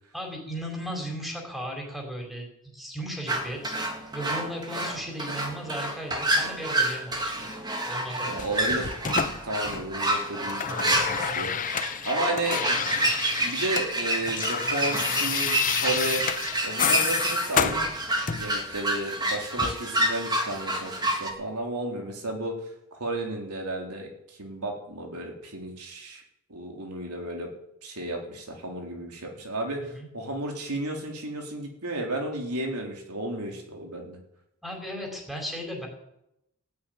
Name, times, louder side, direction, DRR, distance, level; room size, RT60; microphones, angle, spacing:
voice 1, 0.1-2.5 2.7-3.7 4.1-7.5 7.8-8.3 10.7-10.9 29.8-30.1 34.6-35.9, equal, ahead, 1 dB, 4.3 m, -36 dB
sound 1, 3.3-21.3, right 1 dB, 20° right, 2.0 m, -28 dB
voice 2, 8.3-8.9 9.2-11.5 12.0-13.0 13.4-16.2 16.6-17.8 18.3-22.5 23.0-24.1 24.4-26.2 26.5-27.5 27.8-34.2, right 2 dB, 90° right, 1 dB, 3.6 m, -33 dB
sound 2, 8.4-10.1 10.3-13.9 14.1-18.6 19.6-19.8, left 8 dB, 35° left, 0.7 m, -30 dB
17.0 x 8.6 x 9.4 m, 0.82 s
head